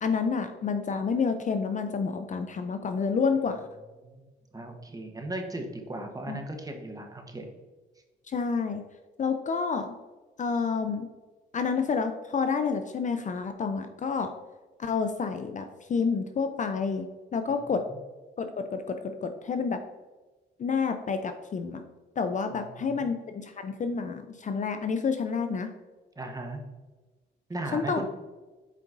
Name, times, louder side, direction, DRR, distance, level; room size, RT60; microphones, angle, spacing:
voice 1, 0.0-3.6 6.3-6.4 8.3-8.8 9.2-10.0 10.4-11.1 11.5-14.3 14.8-17.8 18.4-19.8 20.6-21.8 22.2-23.2 23.4-25.7 27.7-28.1, left 5 dB, 40° left, 8 dB, 0.5 m, -29 dB
voice 2, 4.5-7.5 17.7-18.0 22.5-23.1 26.2-26.6 27.5-28.1, right 1 dB, 20° right, 3 dB, 1.1 m, -37 dB
7.4 x 5.0 x 2.6 m, 1.2 s
cardioid pair, 90°, 20 cm